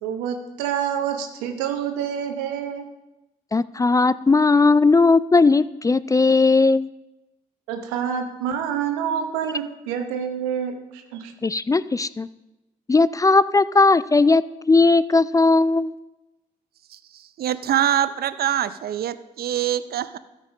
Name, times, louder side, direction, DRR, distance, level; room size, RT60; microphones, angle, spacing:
voice 1, 0.0-2.8 7.7-11.3, right 8 dB, 90° right, 6 dB, 1.0 m, -27 dB
voice 2, 3.5-6.9 11.4-12.3 12.9-15.9, left 3 dB, 20° left, 17 dB, 0.3 m, -17 dB
voice 3, 16.9-20.2, right 11 dB, 60° right, 15 dB, 0.5 m, -24 dB
13.0 x 5.4 x 5.1 m, 1.0 s
hypercardioid pair, 45°, 18 cm